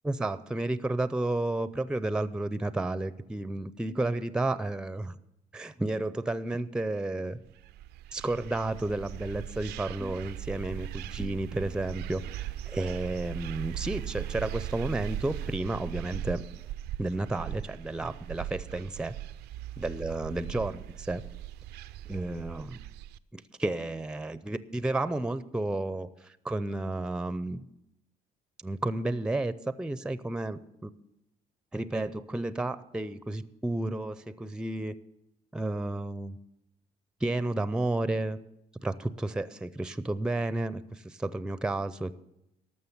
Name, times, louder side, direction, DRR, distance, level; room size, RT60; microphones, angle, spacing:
voice 1, 0.0-5.2 5.5-7.4 8.1-16.4 17.0-19.1 19.8-21.2 22.1-22.8 23.3-27.6 28.6-29.5 29.8-30.9 31.7-34.9 35.5-36.4 37.2-38.4 38.8-42.2, right 2 dB, 5° right, 15 dB, 0.5 m, -32 dB
sound 1, 7.5-23.2, right 12 dB, 80° right, 0.5 m, -39 dB
13.0 x 6.5 x 9.7 m, 0.84 s
cardioid pair, 110°, 17 cm